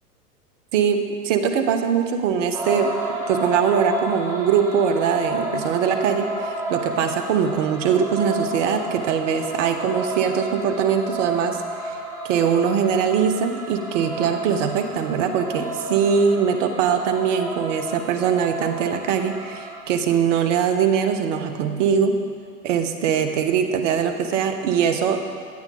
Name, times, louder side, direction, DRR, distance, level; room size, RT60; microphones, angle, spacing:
voice 1, 0.7-2.9 3.3-12.0 12.2-22.1 22.6-25.2, right 7 dB, 50° right, 7 dB, 1.4 m, -22 dB
sound 1, 2.5-19.8, right 1 dB, 5° right, 2.4 m, -31 dB
17.5 x 11.5 x 4.0 m, 2.1 s
hypercardioid pair, 115°, 48 cm